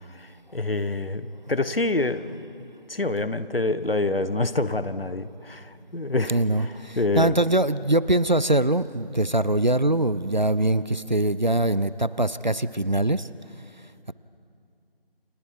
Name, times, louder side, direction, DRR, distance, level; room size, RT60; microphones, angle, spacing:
voice 1, 0.1-7.4, left 2 dB, 70° left, 13 dB, 1.2 m, -27 dB
voice 2, 6.3-13.3, right 1 dB, 50° right, 16 dB, 0.5 m, -23 dB
30.0 x 24.5 x 4.7 m, 2.4 s
figure-of-eight pair, 175°, 29 cm